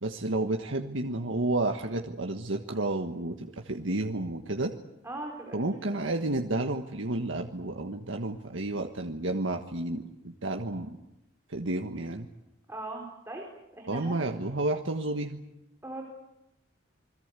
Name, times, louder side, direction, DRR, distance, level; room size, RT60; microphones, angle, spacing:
voice 1, 0.0-4.7 5.5-11.0 11.5-12.3 13.9-15.4, right 2 dB, 75° right, 4 dB, 1.5 m, -31 dB
voice 2, 5.0-5.6 5.9-6.0 12.7-13.4 13.7-14.2 15.8-16.0, right 2 dB, 15° right, 0 dB, 4.4 m, -39 dB
28.5 x 21.5 x 8.3 m, 0.90 s
head